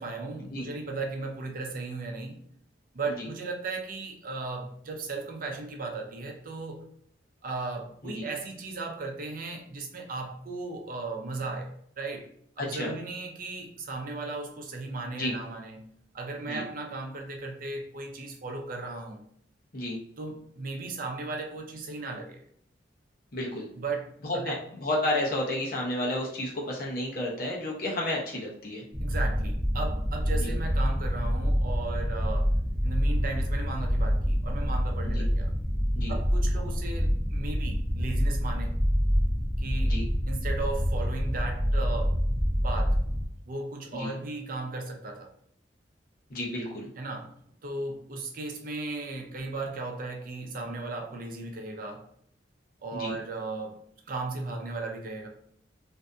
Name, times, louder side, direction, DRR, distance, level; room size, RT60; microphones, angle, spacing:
voice 1, 0.0-2.4 2.9-6.8 7.4-12.3 12.6-15.9 16.1-19.2 20.2-22.4 23.8-24.6 29.0-32.5 32.8-35.5 36.1-38.7 39.6-42.2 42.6-43.0 43.5-45.3 47.0-47.3 47.6-52.1 52.8-53.8 54.1-55.3, right 3 dB, 50° right, 2 dB, 0.5 m, -36 dB
voice 2, 12.6-12.9 15.1-15.3 16.5-16.6 19.7-20.0 23.3-23.7 24.2-28.8 30.4-30.5 35.0-35.2 35.9-36.1 39.9-40.0 43.9-44.1 46.3-46.9 52.9-53.2, left 1 dB, 55° left, -3 dB, 0.8 m, -31 dB
sound 1, 28.9-43.3, equal, 5° right, 0.6 m, -27 dB
2.6 x 2.5 x 2.2 m, 0.66 s
head